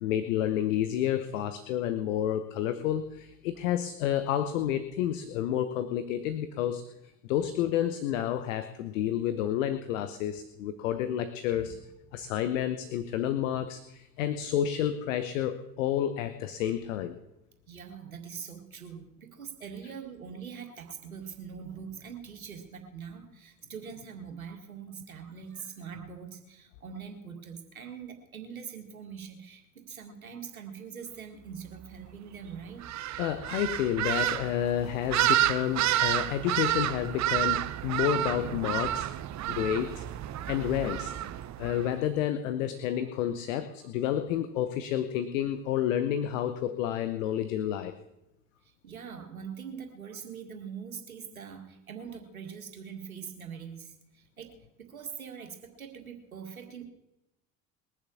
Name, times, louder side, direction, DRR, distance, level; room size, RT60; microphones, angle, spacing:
voice 1, 0.0-6.8 7.2-11.7 12.1-17.2 33.2-39.1 39.5-40.1 40.5-41.1 41.6-48.0, left 10 dB, 70° left, 11 dB, 1.0 m, -30 dB
voice 2, 17.7-32.8 48.8-54.5 54.8-56.8, right 7 dB, 85° right, 4 dB, 2.1 m, -43 dB
sound 1, 32.8-41.9, right 13 dB, 40° right, 1.0 m, -30 dB
21.5 x 7.2 x 7.1 m, 0.90 s
figure-of-eight pair, 65°, 41 cm